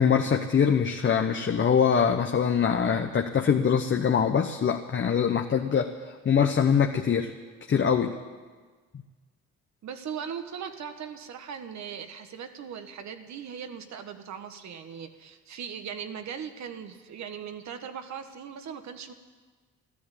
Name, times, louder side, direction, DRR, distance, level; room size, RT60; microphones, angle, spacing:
voice 1, 0.0-5.9 6.2-7.3 7.7-8.1, left 7 dB, 40° left, 4 dB, 1.0 m, -23 dB
voice 2, 9.8-19.1, right 7 dB, 65° right, 8 dB, 1.4 m, -39 dB
13.5 x 12.5 x 8.4 m, 1.4 s
cardioid pair, 90°, 30 cm